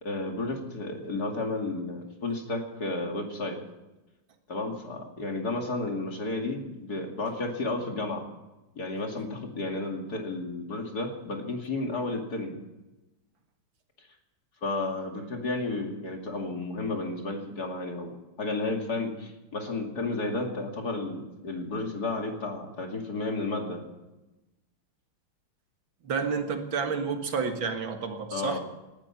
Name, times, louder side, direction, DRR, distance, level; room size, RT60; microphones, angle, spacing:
voice 1, 0.0-3.6 4.5-8.3 8.8-12.6 14.6-18.1 18.4-23.8 28.3-28.6, left 2 dB, 45° left, 2 dB, 2.9 m, -32 dB
voice 2, 26.0-28.6, right 5 dB, 65° right, 5 dB, 2.4 m, -30 dB
18.5 x 12.0 x 5.9 m, 1.0 s
omnidirectional pair, 2.3 m